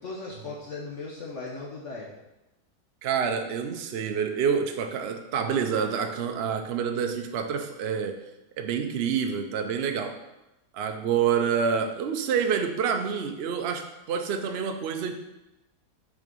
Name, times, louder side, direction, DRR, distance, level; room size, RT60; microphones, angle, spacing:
voice 1, 0.0-2.1, left 3 dB, 50° left, -3 dB, 1.2 m, -37 dB
voice 2, 3.0-8.2 8.6-10.2 10.7-15.1, right 7 dB, 55° right, 5 dB, 0.7 m, -27 dB
6.3 x 5.1 x 5.3 m, 0.96 s
omnidirectional pair, 1.8 m